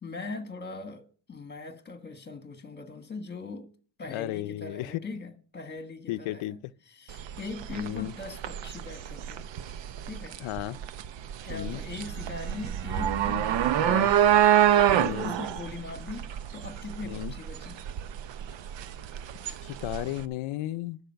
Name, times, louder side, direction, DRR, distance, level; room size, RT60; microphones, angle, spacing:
voice 1, 0.0-3.7 4.0-6.6 6.9-9.4 10.0-10.4 11.4-14.2 14.9-16.3 16.5-17.8, left 3 dB, 20° left, 1.5 m, -40 dB
voice 2, 4.1-4.9 6.1-6.6 7.7-8.1 10.4-10.8 11.5-11.8 13.8-14.1 14.9-15.4 17.0-17.3 19.6-21.0, left 16 dB, 85° left, 0.6 m, -34 dB
sound 1, 7.1-20.2, right 11 dB, 65° right, 0.8 m, -27 dB
sound 2, 13.0-15.6, equal, 5° right, 5.9 m, -46 dB
12.0 x 7.2 x 5.7 m
cardioid pair, 130°, 47 cm